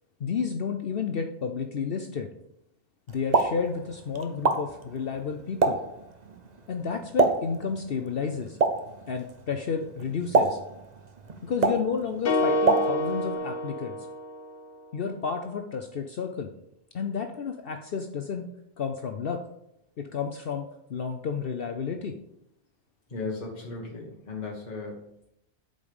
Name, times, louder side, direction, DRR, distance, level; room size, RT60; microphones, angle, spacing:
voice 1, 0.2-2.3 3.1-5.8 6.7-8.6 9.1-10.6 11.4-14.0 14.9-16.5 16.9-18.4 18.8-19.4 20.0-20.6 20.9-22.1, left 6 dB, 60° left, 5 dB, 0.9 m, -31 dB
Explosion, 3.1-13.3, right 3 dB, 40° right, 1.0 m, -29 dB
sound 1, 12.3-14.6, left 1 dB, 90° left, 1.3 m, -27 dB
voice 2, 23.1-25.3, left 3 dB, 40° left, -2 dB, 1.6 m, -36 dB
8.5 x 5.4 x 7.0 m, 0.79 s
omnidirectional pair, 1.2 m